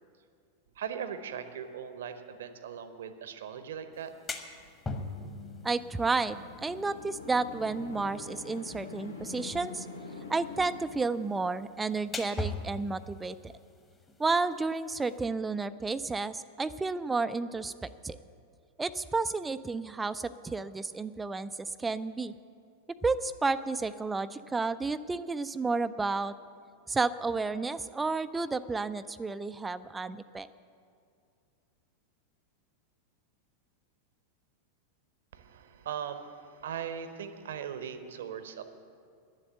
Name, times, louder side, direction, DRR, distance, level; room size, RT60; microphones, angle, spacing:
voice 1, 0.8-4.1 35.3-38.6, right 8 dB, 60° right, 10 dB, 0.8 m, -39 dB
sound 1, 3.9-15.2, left 2 dB, 20° left, 1.1 m, -43 dB
sound 2, 4.8-11.8, left 4 dB, 80° left, 1.1 m, -46 dB
voice 2, 5.6-9.9 10.3-13.5 14.2-18.2 18.8-22.3 23.0-26.3 26.9-30.5, right 3 dB, 10° right, 14 dB, 0.3 m, -31 dB
10.5 x 7.7 x 9.7 m, 2.3 s
figure-of-eight pair, 90°, 0 cm